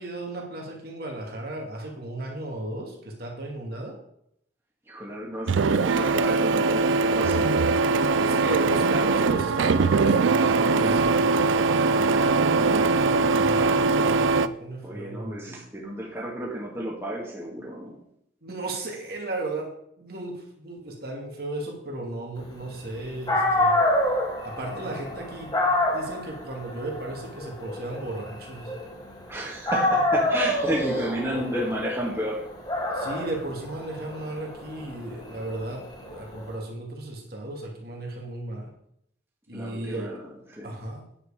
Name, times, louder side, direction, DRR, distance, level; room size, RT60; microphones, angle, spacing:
voice 1, 0.0-4.0 8.1-11.2 13.3-15.5 18.4-19.7 20.0-23.8 24.4-25.5 25.9-28.7 32.9-38.7 39.5-40.1 40.6-41.0, right 2 dB, 55° right, 0 dB, 2.5 m, -35 dB
voice 2, 4.9-7.6 14.8-18.0 24.7-25.0 29.3-32.5 39.5-40.8, right 1 dB, 15° right, -3 dB, 2.1 m, -32 dB
Printer, 5.5-14.5, right 4 dB, 85° right, 0.5 m, -21 dB
Dog, 23.0-23.1 23.3-29.3 29.6-36.4, left 1 dB, 20° left, 3.0 m, -27 dB
9.8 x 8.3 x 5.1 m, 0.74 s
head